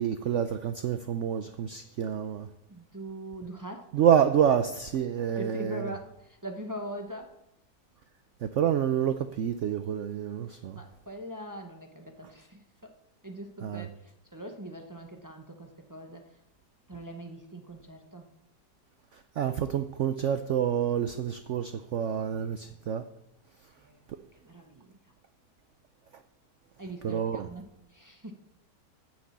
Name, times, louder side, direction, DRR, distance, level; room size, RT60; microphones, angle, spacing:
voice 1, 0.0-2.5 3.9-5.9 8.4-10.8 13.6-13.9 19.1-23.1 24.1-24.2 27.0-27.5, right 9 dB, 90° right, 0.6 m, -28 dB
voice 2, 2.7-3.9 5.3-7.3 10.7-12.9 13.2-16.3 16.9-18.3 22.3-22.8 23.7-24.1 24.4-25.0 26.8-28.3, right 1 dB, 25° right, 0.4 m, -42 dB
9.9 x 6.2 x 7.4 m
omnidirectional pair, 1.9 m